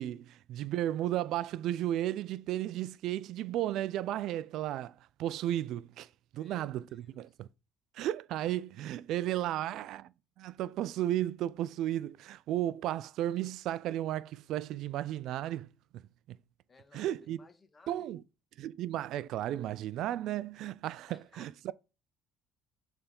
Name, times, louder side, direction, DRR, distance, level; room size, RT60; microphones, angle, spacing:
voice 1, 0.0-7.5 7.9-10.1 10.4-16.4 16.9-17.4 17.9-18.2 18.6-21.7, right 13 dB, 65° right, 0.4 m, -34 dB
voice 2, 6.3-7.4 16.7-18.1 21.1-21.7, left 4 dB, 25° left, 1.4 m, -60 dB
6.9 x 3.4 x 5.3 m
supercardioid pair, 90°, 0 cm